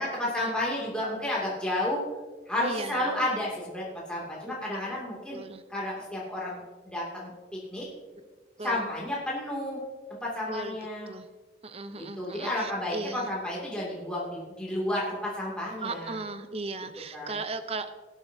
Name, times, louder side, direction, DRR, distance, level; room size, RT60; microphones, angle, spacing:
voice 1, 0.0-2.0 2.5-5.4 5.7-7.3 7.7-7.8 8.6-9.8 10.1-11.1 11.9-16.2 17.1-17.3, left 1 dB, 5° left, -6 dB, 2.5 m, -31 dB
voice 2, 2.6-3.2 4.5-5.0 5.3-5.6 8.1-8.2 8.6-8.9 10.5-10.8 11.1-11.3 11.6-13.3 15.8-17.9, right 3 dB, 35° right, 10 dB, 0.6 m, -37 dB
19.0 x 8.3 x 2.7 m, 1.3 s
head